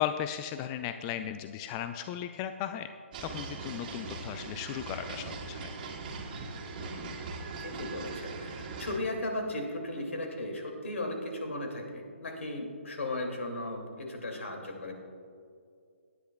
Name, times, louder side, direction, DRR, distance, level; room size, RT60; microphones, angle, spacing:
voice 1, 0.0-2.9 3.2-5.7, left 10 dB, 20° left, 9 dB, 0.3 m, -35 dB
sound 1, 3.1-9.0, right 3 dB, 40° right, 1.8 m, -40 dB
voice 2, 6.8-7.1 7.6-14.9, left 1 dB, 70° left, 3 dB, 2.5 m, -36 dB
19.0 x 10.5 x 2.3 m, 2.3 s
figure-of-eight pair, 140°, 7 cm